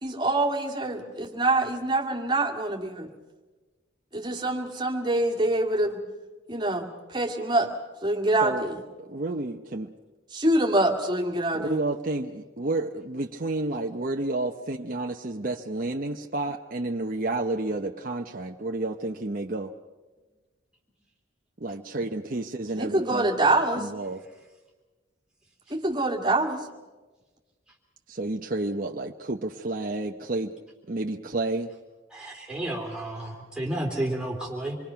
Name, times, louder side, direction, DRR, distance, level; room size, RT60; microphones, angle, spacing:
voice 1, 0.0-3.1 4.1-6.0 6.5-7.7 8.0-8.7 10.3-11.8 22.8-23.9 25.7-26.7, right 2 dB, 20° right, 2.2 m, -25 dB
voice 2, 9.0-9.9 11.5-19.7 21.6-23.3 23.8-24.2 28.1-30.5 30.9-31.7, right 2 dB, 40° right, 0.8 m, -30 dB
voice 3, 32.1-34.8, right 1 dB, 5° right, 3.1 m, -31 dB
27.0 x 22.0 x 5.7 m
head